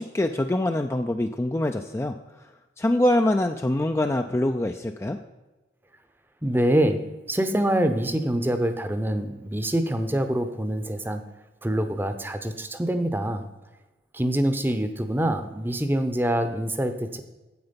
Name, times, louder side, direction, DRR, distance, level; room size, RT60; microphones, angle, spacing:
voice 1, 0.0-2.2 2.8-5.2, left 1 dB, 15° left, 6 dB, 0.3 m, -24 dB
voice 2, 6.4-7.0 7.3-11.2 11.6-13.5 14.1-17.2, right 1 dB, 10° right, 8 dB, 0.7 m, -25 dB
9.6 x 8.0 x 5.2 m, 1.1 s
head